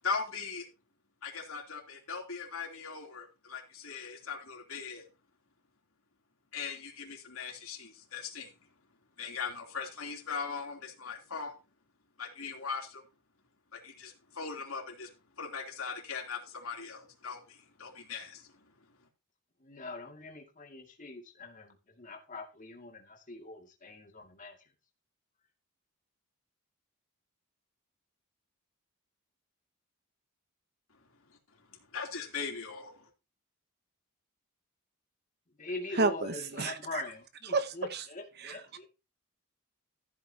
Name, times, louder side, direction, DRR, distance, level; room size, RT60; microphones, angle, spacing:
voice 1, 0.0-0.7 1.2-5.1 6.5-8.5 9.2-11.5 12.2-13.0 13.7-15.1 15.4-18.7 31.3-31.4 31.7-33.1, left 5 dB, 70° left, 3.2 m, -39 dB
voice 2, 19.6-24.6 35.6-38.9, left 2 dB, 35° left, 2.3 m, -43 dB
voice 3, 36.0-37.0 37.4-38.1 38.4-38.6, right 3 dB, 50° right, 0.9 m, -31 dB
14.5 x 8.4 x 2.9 m
head